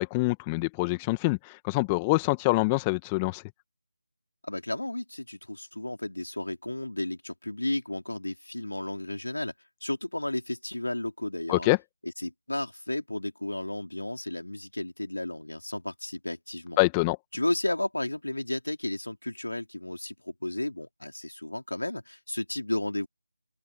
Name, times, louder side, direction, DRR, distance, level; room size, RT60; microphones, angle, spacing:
voice 1, 0.0-3.4 11.5-11.8 16.8-17.2, left 25 dB, 15° left, 1.7 m, -25 dB
voice 2, 4.4-9.5 9.8-11.7 12.2-16.8 17.3-23.1, left 1 dB, 75° left, 3.6 m, -33 dB
figure-of-eight pair, 160°, 0 cm